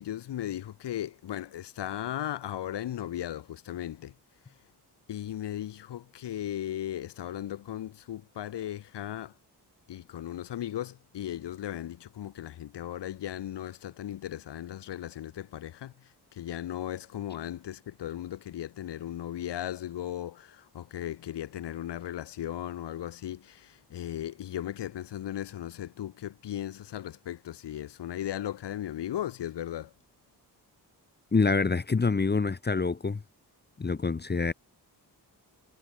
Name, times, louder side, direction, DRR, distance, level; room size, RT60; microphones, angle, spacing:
voice 1, 0.0-4.1 5.1-9.3 9.9-29.9, left 12 dB, 90° left, 1.3 m, -37 dB
voice 2, 31.3-33.2 33.8-34.5, left 4 dB, 25° left, 1.0 m, -26 dB
cardioid pair, 80°, 40 cm